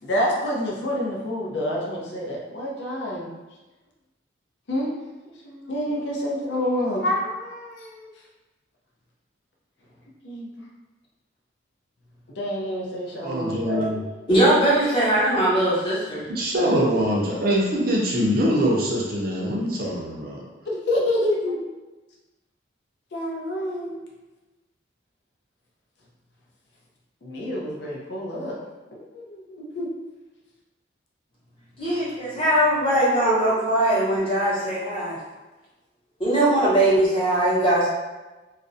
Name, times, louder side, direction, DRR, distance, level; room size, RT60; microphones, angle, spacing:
voice 1, 0.0-3.3 4.7-5.1 5.4-8.1 10.2-10.7 12.3-13.8 14.7-15.1 16.8-16.9 20.7-21.6 23.1-24.0 27.2-28.6 28.9-29.9, left 1 dB, 65° left, -3 dB, 0.5 m, -28 dB
voice 2, 13.2-14.0 16.3-20.4, equal, 50° right, -4 dB, 0.5 m, -23 dB
voice 3, 14.3-16.3 31.8-35.2 36.2-37.9, right 1 dB, 30° left, -9 dB, 0.8 m, -20 dB
2.4 x 2.0 x 2.5 m, 1.1 s
head